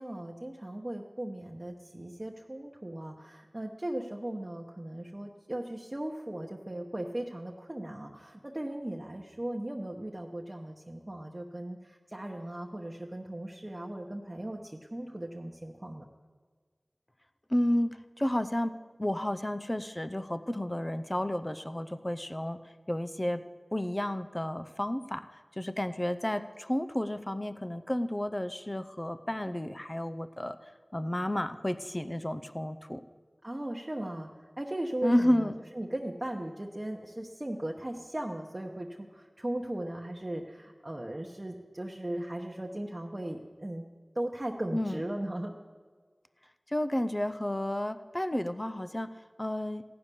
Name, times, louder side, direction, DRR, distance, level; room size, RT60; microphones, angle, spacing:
voice 1, 0.0-16.1 33.4-34.3 34.6-43.8 44.1-45.5, right 1 dB, 30° right, 0 dB, 1.0 m, -37 dB
voice 2, 17.5-18.7 19.0-22.6 22.9-23.4 23.7-25.3 25.6-30.6 30.9-33.0 35.0-35.5 44.7-45.0 46.7-49.1 49.4-49.8, left 1 dB, 25° left, 11 dB, 0.6 m, -31 dB
15.5 x 6.9 x 9.9 m, 1.5 s
wide cardioid pair, 55°, 0 cm